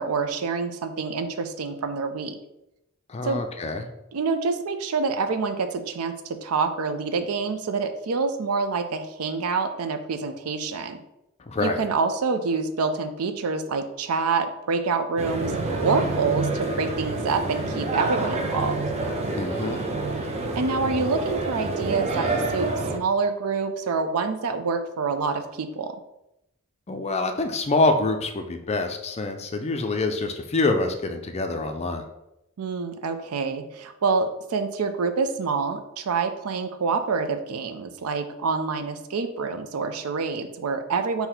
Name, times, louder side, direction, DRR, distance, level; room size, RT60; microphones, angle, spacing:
voice 1, 0.0-2.4 3.2-3.4 4.1-11.0 11.6-15.5 15.8-18.8 20.5-25.9 32.6-41.3, right 4 dB, 80° right, 8 dB, 0.5 m, -27 dB
voice 2, 3.1-3.9 11.5-11.8 19.3-19.8 26.9-32.0, left 2 dB, 30° left, 6 dB, 0.4 m, -26 dB
sound 1, 15.2-23.0, right 2 dB, 30° right, 0.5 m, -28 dB
3.9 x 2.8 x 4.3 m, 0.88 s
head